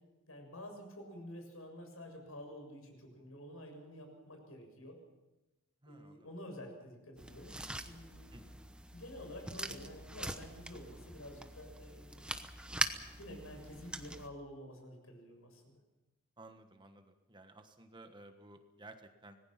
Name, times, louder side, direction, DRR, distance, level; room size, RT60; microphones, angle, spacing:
voice 1, 0.3-5.0 5.9-7.5 7.8-8.4 8.9-12.3 13.2-15.8, left 1 dB, 80° left, 4 dB, 6.9 m, -50 dB
voice 2, 5.8-6.3 8.3-8.6 16.4-19.4, right 2 dB, 20° right, 6 dB, 1.4 m, -55 dB
sound 1, 7.2-14.3, right 1 dB, 5° right, 1.0 m, -42 dB
25.5 x 19.5 x 5.9 m, 1.1 s
head